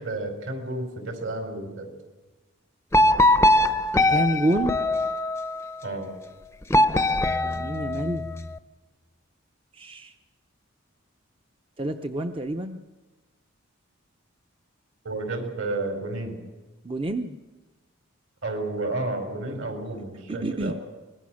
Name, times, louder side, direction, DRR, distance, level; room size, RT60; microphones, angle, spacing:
voice 1, 0.0-1.9 5.8-6.1 15.0-16.4 18.4-20.7, right 2 dB, 65° right, 5 dB, 5.0 m, -31 dB
sound 1, 2.9-5.6 6.7-8.5, left 1 dB, 10° left, 0.7 m, -21 dB
voice 2, 4.1-4.8 7.4-8.3 9.8-10.1 11.8-12.8 16.8-17.4 20.3-20.7, right 1 dB, 25° right, 6 dB, 0.7 m, -28 dB
24.5 x 20.5 x 6.4 m, 1.2 s
head